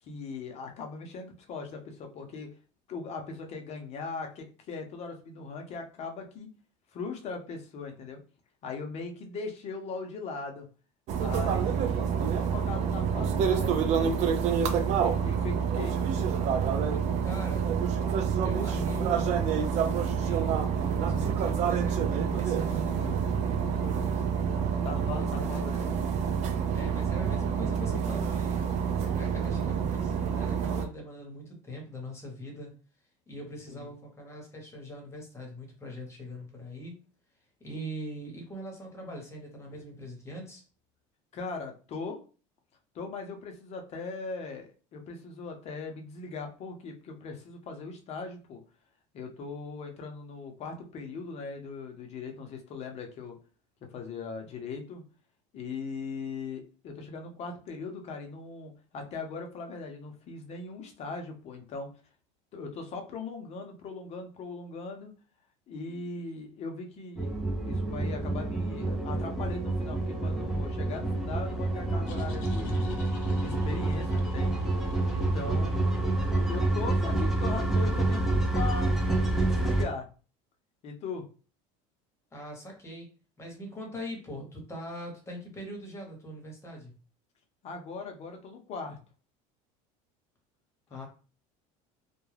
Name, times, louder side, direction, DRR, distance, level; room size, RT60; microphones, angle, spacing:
voice 1, 0.0-2.5 2.9-6.5 6.9-8.2 8.6-10.7 11.2-14.2 15.0-16.0 21.0-21.3 24.8-25.9 33.7-33.9 41.3-42.2 42.9-48.6 49.1-53.4 53.8-55.0 55.5-61.9 62.5-65.1 65.7-72.8 73.4-74.6 75.1-79.0 79.3-80.1 80.8-81.2 87.6-89.0 90.9-91.1, left 4 dB, 40° left, 4 dB, 0.7 m, -39 dB
sound 1, 11.1-30.8, right 7 dB, 45° right, 0.4 m, -28 dB
voice 2, 17.2-17.7 18.4-24.2 25.1-25.7 26.7-28.7 29.1-32.7 33.3-37.0 37.6-40.6 82.3-83.1 83.4-86.9 90.9-91.1, equal, 15° left, 0 dB, 1.0 m, -41 dB
sound 2, 67.2-79.8, right 2 dB, ahead, 0.6 m, -28 dB
sound 3, 71.6-77.1, left 5 dB, 80° left, 0.8 m, -43 dB
2.3 x 2.2 x 3.2 m, 0.37 s
supercardioid pair, 115°, 17 cm